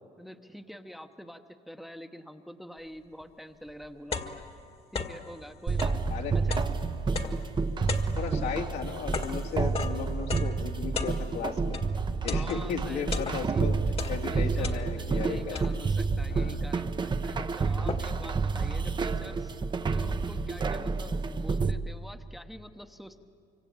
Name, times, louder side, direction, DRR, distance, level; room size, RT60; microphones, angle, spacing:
voice 1, 0.2-4.5 4.9-6.6 7.2-7.5 8.2-8.6 12.3-13.6 14.3-19.6 19.8-23.2, equal, ahead, 6 dB, 1.0 m, -46 dB
sound 1, 3.2-3.3 3.7-5.3 5.7-11.9 12.3-13.6 13.9-15.2 15.5-16.1 16.7-16.8 17.1-18.3, left 4 dB, 35° left, 1.6 m, -37 dB
sound 2, 5.7-21.7, right 4 dB, 25° right, 0.9 m, -29 dB
voice 2, 8.1-11.8 12.2-13.8 14.1-15.6 16.3-16.6, left 7 dB, 80° left, 1 dB, 3.0 m, -35 dB
25.0 x 24.5 x 8.8 m, 2.6 s
cardioid pair, 110°, 17 cm